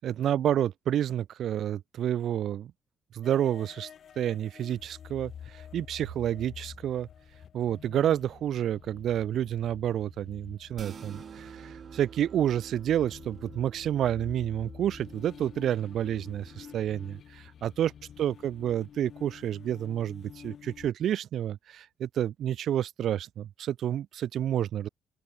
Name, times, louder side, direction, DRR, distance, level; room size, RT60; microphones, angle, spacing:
voice 1, 0.0-2.7 3.1-3.9 4.2-7.1 7.5-17.9 18.2-24.9, right 10 dB, 70° right, 0.4 m, -29 dB
sound 1, 3.2-20.9, left 8 dB, 60° left, 0.6 m, -49 dB
sound 2, 10.7-17.2, right 7 dB, 50° right, 2.1 m, -48 dB
open air
cardioid pair, 90°, 0 cm